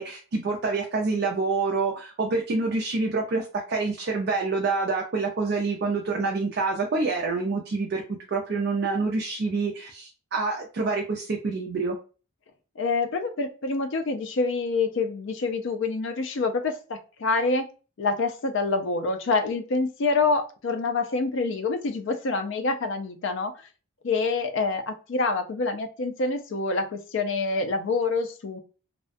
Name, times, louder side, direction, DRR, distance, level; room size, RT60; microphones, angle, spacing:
voice 1, 0.0-12.0, right 3 dB, 45° right, 0 dB, 0.4 m, -27 dB
voice 2, 12.8-17.7 18.0-23.5 24.0-28.6, left 3 dB, 55° left, 7 dB, 0.4 m, -26 dB
2.3 x 2.1 x 2.5 m, 0.35 s
head